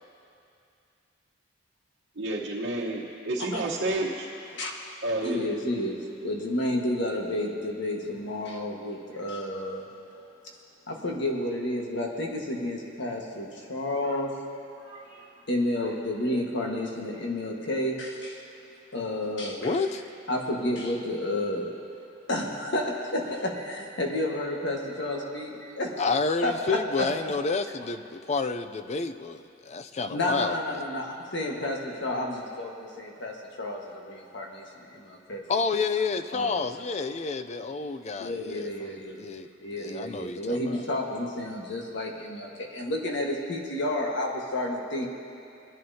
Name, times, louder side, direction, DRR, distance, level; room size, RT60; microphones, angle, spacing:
voice 1, 2.2-4.3 5.0-5.4, right 2 dB, 65° right, -6 dB, 1.1 m, -30 dB
voice 2, 5.2-9.9 10.9-14.3 14.8-18.5 18.9-19.7 20.3-21.7 22.3-26.0 26.4-27.1 30.1-35.5 36.3-36.6 38.2-39.2 39.6-45.1, left 1 dB, 65° left, 0 dB, 1.6 m, -31 dB
voice 3, 19.6-20.0 26.0-30.8 35.5-39.5 39.8-40.8, left 4 dB, 35° left, 9 dB, 0.4 m, -30 dB
23.0 x 10.5 x 2.8 m, 2.5 s
head